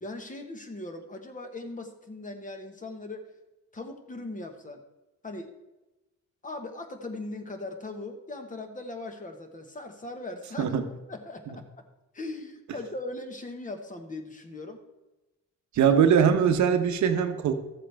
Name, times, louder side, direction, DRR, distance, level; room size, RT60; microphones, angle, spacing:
voice 1, 0.0-3.3 3.7-4.8 5.2-5.5 6.4-10.8 11.1-11.6 12.1-14.8 15.8-16.0, left 2 dB, 25° left, 5 dB, 1.3 m, -39 dB
voice 2, 15.7-17.5, right 7 dB, 70° right, 8 dB, 0.9 m, -21 dB
13.0 x 7.5 x 3.4 m, 1.0 s
cardioid pair, 90°, 30 cm